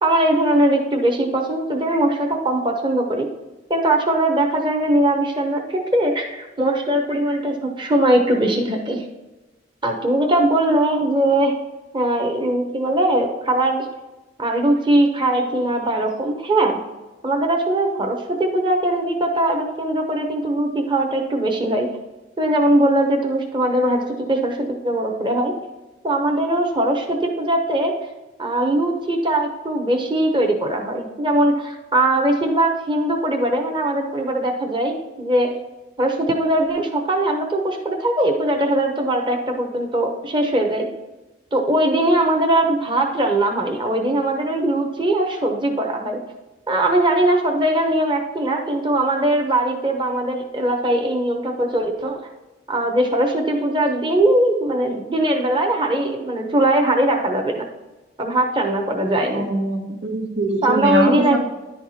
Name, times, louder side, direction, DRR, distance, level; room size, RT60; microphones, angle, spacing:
voice 1, 0.0-3.3 3.7-9.0 9.8-11.5 11.9-13.8 14.4-16.8 17.2-21.9 22.4-24.6 24.8-25.5 26.0-27.9 28.4-35.5 36.0-40.9 41.5-46.2 46.7-52.2 52.7-57.7 58.2-59.5 60.6-61.4, right 1 dB, 25° right, 2 dB, 0.9 m, -20 dB
voice 2, 59.3-61.4, right 2 dB, 90° right, 1 dB, 1.8 m, -23 dB
10.5 x 4.6 x 4.2 m, 1.1 s
head